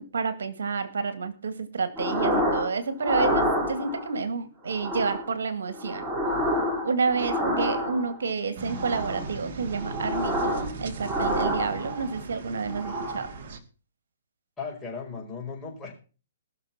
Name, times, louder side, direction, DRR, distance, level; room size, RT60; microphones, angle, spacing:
voice 1, 0.0-6.1 6.8-13.3, right 4 dB, 75° right, 12 dB, 2.0 m, -29 dB
sound 1, 2.0-2.7 3.0-4.1 4.7-5.3 5.7-8.2 8.7-9.3 9.7-10.7 11.0-12.2 12.6-13.3, equal, 10° right, 3.5 m, -28 dB
sound 2, 8.6-13.6, right 4 dB, 50° right, 2.2 m, -38 dB
voice 2, 14.6-15.9, left 5 dB, 10° left, -1 dB, 5.1 m, -36 dB
19.5 x 6.7 x 5.9 m, 0.37 s
hypercardioid pair, 145°, 0 cm